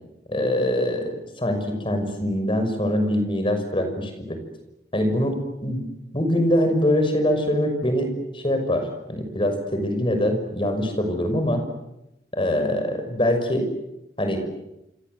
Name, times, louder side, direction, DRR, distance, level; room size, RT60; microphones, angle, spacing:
voice 1, 0.3-4.4 4.9-11.6 12.3-13.7 14.2-14.4, left 1 dB, 30° left, 7 dB, 6.2 m, -24 dB
28.5 x 26.0 x 8.0 m, 0.89 s
head